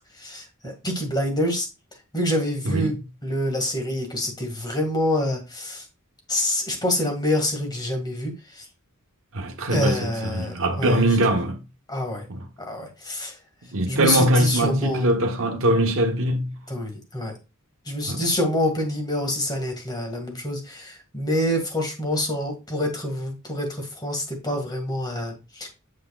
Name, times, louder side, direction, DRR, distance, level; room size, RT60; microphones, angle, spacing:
voice 1, 0.2-1.7 2.1-3.0 3.2-5.8 6.3-8.6 9.7-11.1 11.9-12.3 12.6-13.3 13.9-15.1 16.7-17.3 17.9-25.7, left 1 dB, 20° left, 2.0 m, -26 dB
voice 2, 2.6-3.0 9.3-11.6 12.3-12.5 13.7-16.5 18.1-18.2, right 1 dB, 65° right, 1.1 m, -22 dB
7.5 x 5.8 x 2.4 m
head